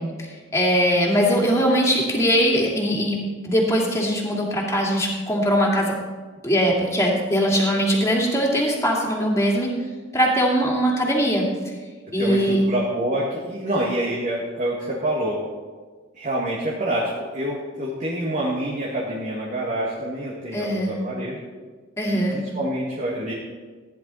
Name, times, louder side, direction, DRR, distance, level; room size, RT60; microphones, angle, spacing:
voice 1, 0.0-3.2 3.4-6.0 6.4-9.7 10.1-11.5 12.1-12.6 20.5-20.9 22.0-22.4, equal, 15° left, -3 dB, 2.7 m, -21 dB
voice 2, 12.2-15.4 16.1-21.4 22.1-23.3, right 1 dB, 40° right, -4 dB, 2.0 m, -27 dB
15.0 x 10.5 x 4.2 m, 1.4 s
head